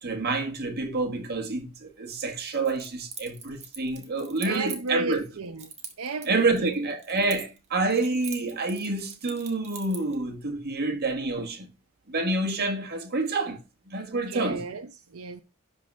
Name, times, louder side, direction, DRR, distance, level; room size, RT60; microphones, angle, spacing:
voice 1, 0.0-5.2 6.3-11.7 12.1-14.6, right 3 dB, 50° right, 1.7 m, -28 dB
Keys jangling, 2.5-5.2 5.6-7.7 7.9-10.2, right 6 dB, 30° right, 1.9 m, -42 dB
voice 2, 4.4-5.7 6.0-6.8 14.1-15.4, right 3 dB, 80° right, 0.8 m, -34 dB
11.5 x 3.9 x 6.2 m
head